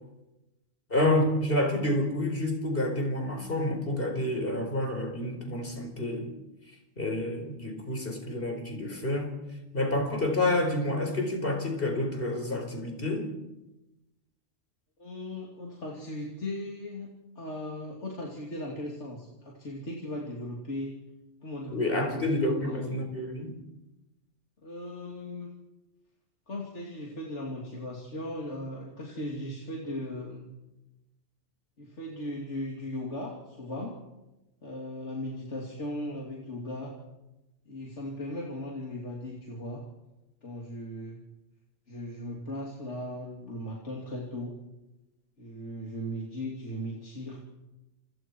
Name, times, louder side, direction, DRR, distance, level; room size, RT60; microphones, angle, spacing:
voice 1, 0.9-6.3 7.0-9.3 9.7-13.3 21.7-23.5, left 1 dB, 50° left, 4 dB, 4.6 m, -29 dB
voice 2, 15.0-20.9 21.4-23.0 24.6-25.5 26.5-30.5 31.8-34.0 34.6-37.0 37.7-39.8 40.4-41.2 41.9-44.6 45.4-47.4, left 1 dB, 75° left, -2 dB, 3.4 m, -37 dB
29.0 x 27.0 x 4.7 m, 1.0 s
omnidirectional pair, 1.2 m